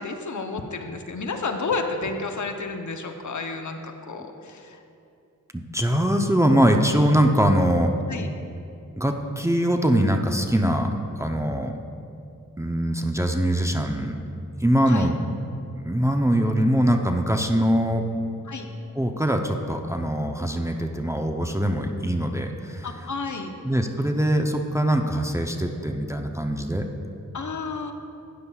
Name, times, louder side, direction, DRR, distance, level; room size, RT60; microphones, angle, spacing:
voice 1, 0.0-4.8 8.1-8.3 14.9-15.1 18.5-18.7 22.8-23.5 27.3-27.9, left 4 dB, 60° left, 5 dB, 0.8 m, -31 dB
voice 2, 5.5-7.9 9.0-11.7 12.6-14.2 14.6-15.2 15.8-18.3 18.9-22.9 23.6-26.9, equal, 10° right, 4 dB, 0.6 m, -22 dB
12.5 x 9.7 x 2.3 m, 2.5 s
cardioid pair, 60°, 34 cm